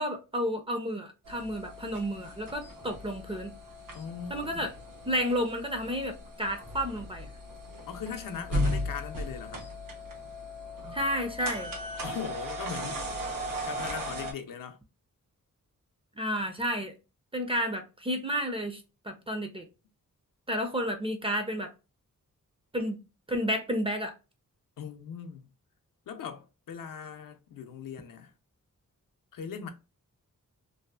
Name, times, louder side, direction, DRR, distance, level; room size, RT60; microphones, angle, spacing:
voice 1, 0.0-3.5 4.3-4.7 5.1-7.3 10.9-11.7 16.2-16.9 17.3-18.8 19.1-19.6 20.5-21.7 22.7-23.0 23.3-24.1, equal, 15° right, 0.4 m, -31 dB
sound 1, 1.3-14.3, equal, 90° right, 0.9 m, -37 dB
voice 2, 3.9-4.7 7.8-9.7 12.0-13.0 13.7-14.8 24.8-25.5 26.1-28.3 29.3-29.7, left 7 dB, 75° left, 0.5 m, -39 dB
2.6 x 2.4 x 2.2 m
wide cardioid pair, 145°, 33 cm